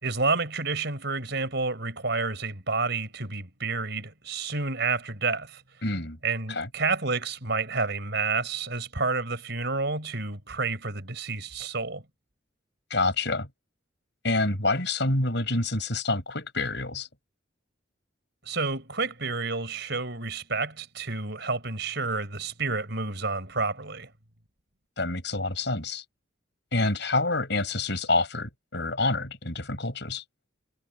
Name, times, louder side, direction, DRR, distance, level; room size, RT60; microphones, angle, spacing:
voice 1, 0.0-5.6 6.2-12.0 18.4-24.1, right 4 dB, 55° right, 5.7 m, -29 dB
voice 2, 5.8-6.2 6.5-6.7 12.9-13.5 14.2-17.1 25.0-26.0 26.7-30.2, left 2 dB, 60° left, 6.8 m, -27 dB
head